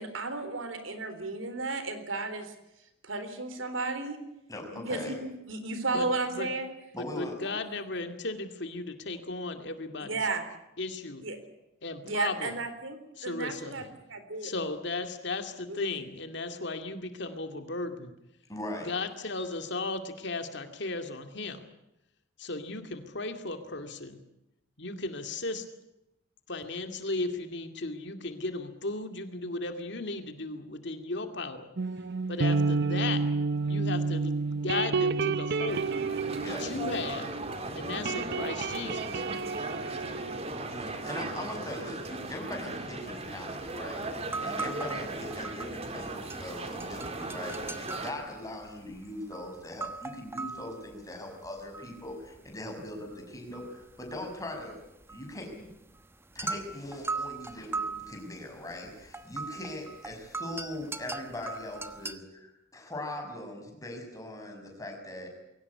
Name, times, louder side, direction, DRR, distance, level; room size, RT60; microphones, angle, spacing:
voice 1, 0.0-2.5 3.0-4.2 4.7-6.7 10.1-10.4 11.2-11.4 12.0-14.5 15.7-16.0, right 3 dB, 85° right, 9 dB, 3.9 m, -33 dB
voice 2, 4.5-5.1 6.9-7.5 18.5-18.9 36.4-36.7 40.7-44.0 44.4-54.8 55.1-55.7 56.3-65.3, left 1 dB, 15° left, 3 dB, 6.1 m, -40 dB
voice 3, 7.2-10.2 10.8-11.2 11.8-12.5 13.2-13.7 14.4-18.1 18.8-21.6 22.4-24.2 24.8-25.6 26.5-31.7 32.3-33.2 33.7-35.8 36.5-37.3 37.7-39.2, left 3 dB, 60° left, 7 dB, 2.4 m, -35 dB
sound 1, 31.8-37.6 37.8-41.3, right 4 dB, 55° right, 0.8 m, -30 dB
sound 2, 35.7-48.1, right 2 dB, 30° right, 2.5 m, -37 dB
sound 3, 43.6-43.7 44.0-46.0 46.3-52.6 52.9-62.2, right 3 dB, 10° right, 1.1 m, -39 dB
22.5 x 18.0 x 9.6 m, 0.87 s
head